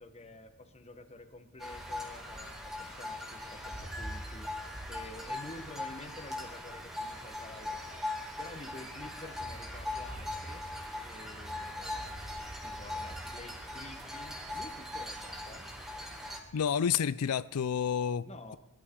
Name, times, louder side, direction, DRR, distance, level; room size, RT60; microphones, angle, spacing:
voice 1, 0.0-7.8 8.4-10.6 11.0-12.4 12.6-15.7 18.2-18.6, left 2 dB, 30° left, 1.2 m, -49 dB
sound 1, 1.6-16.4, left 1 dB, ahead, 2.5 m, -40 dB
voice 2, 16.5-18.3, left 8 dB, 90° left, 0.4 m, -29 dB
22.0 x 13.0 x 3.8 m
head